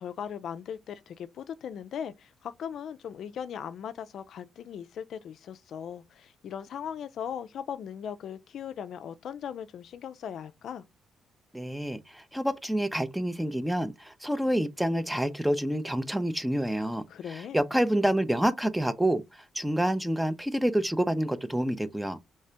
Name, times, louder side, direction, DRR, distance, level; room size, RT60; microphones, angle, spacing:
voice 1, 0.0-10.8 17.1-17.6, left 8 dB, 70° left, 0.3 m, -38 dB
voice 2, 11.5-22.2, right 1 dB, 5° right, 0.5 m, -28 dB
3.2 x 2.7 x 3.3 m
cardioid pair, 90°, 0 cm